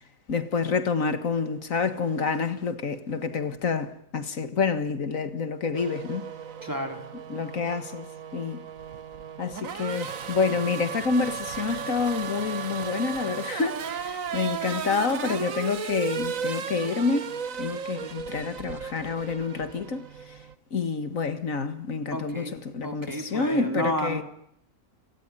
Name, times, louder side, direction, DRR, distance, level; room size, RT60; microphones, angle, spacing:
voice 1, 0.3-6.3 7.3-8.0 8.3-8.6 9.4-17.3 17.6-20.1 20.7-24.2, left 5 dB, 75° left, 2.1 m, -28 dB
Race car auto racing / Accelerating revving vroom, 5.7-20.5, right 7 dB, 80° right, 1.7 m, -35 dB
voice 2, 6.6-7.0 22.1-22.5 22.8-24.2, equal, 15° right, 4.2 m, -31 dB
29.5 x 19.0 x 9.9 m
omnidirectional pair, 1.4 m